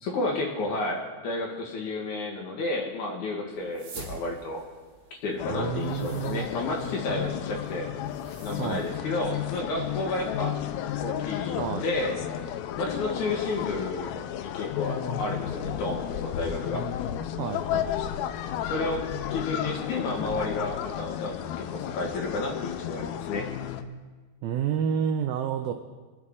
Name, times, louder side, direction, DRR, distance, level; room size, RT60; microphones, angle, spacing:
voice 1, 0.0-4.6 5.2-7.9 8.4-10.6 11.0-12.2 12.8-16.8 18.6-23.4, left 2 dB, 60° left, 0 dB, 2.3 m, -31 dB
sound 1, 3.5-8.9, right 3 dB, 55° right, 4.1 m, -47 dB
sound 2, 5.4-23.8, left 10 dB, 85° left, 2.2 m, -33 dB
voice 2, 5.5-6.5 8.6-8.9 11.6-11.9 17.4-17.9 24.4-25.7, right 8 dB, 85° right, 6 dB, 2.1 m, -29 dB
24.5 x 10.0 x 3.8 m, 1.4 s
omnidirectional pair, 5.0 m